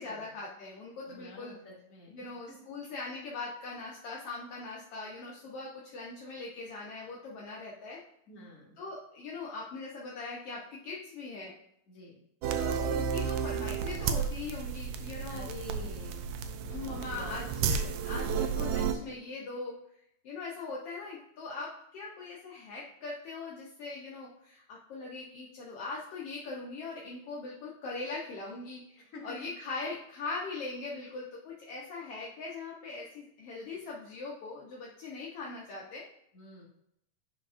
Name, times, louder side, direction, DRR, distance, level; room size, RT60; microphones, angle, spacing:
voice 1, 0.0-1.5 2.1-8.0 8.8-11.5 12.6-15.5 16.7-19.8 20.2-36.0, left 3 dB, 75° left, -4 dB, 1.4 m, -41 dB
voice 2, 1.0-2.6 8.3-8.8 11.9-12.2 15.3-16.3 16.8-17.4 29.0-29.3 36.3-36.6, left 2 dB, 30° left, -5 dB, 1.9 m, -48 dB
sound 1, 12.4-18.9, right 6 dB, 80° right, 1.6 m, -32 dB
11.0 x 4.6 x 2.5 m, 0.74 s
omnidirectional pair, 3.7 m